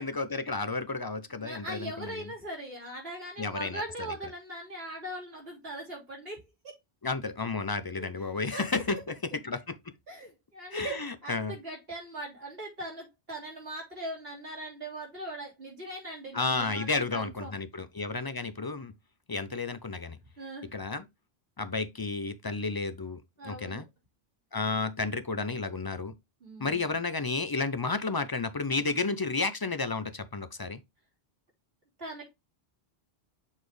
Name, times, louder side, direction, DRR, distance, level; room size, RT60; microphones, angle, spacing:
voice 1, 0.0-2.2 3.4-3.8 7.0-9.2 9.4-9.8 10.7-11.6 16.3-18.9 19.3-20.2 20.7-21.0 21.6-23.9 24.5-26.1 26.6-30.8, left 3 dB, 30° left, 0.4 m, -32 dB
voice 2, 1.3-6.7 8.0-9.0 10.1-17.5 20.4-20.8 23.4-23.8 26.4-27.0 32.0-32.3, right 1 dB, 65° right, 3.5 m, -40 dB
7.2 x 4.1 x 3.2 m
omnidirectional pair, 1.1 m